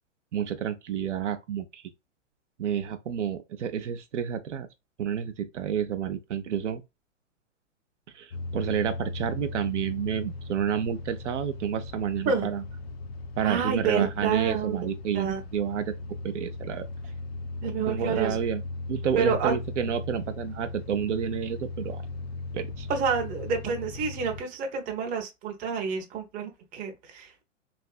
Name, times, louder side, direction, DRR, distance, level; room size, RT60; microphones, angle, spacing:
voice 1, 0.3-1.8 2.6-4.7 5.0-6.8 8.1-12.6 13.4-15.9 16.2-16.9 17.9-18.6 18.9-22.0 22.5-22.9, right 8 dB, 65° right, 0.6 m, -30 dB
sound 1, 8.3-24.4, left 3 dB, 55° left, 0.5 m, -37 dB
voice 2, 13.4-14.8 15.1-15.4 17.6-18.4 19.2-19.5 22.9-27.4, right 6 dB, 20° right, 0.6 m, -28 dB
3.3 x 2.5 x 2.3 m
hypercardioid pair, 115°, 38 cm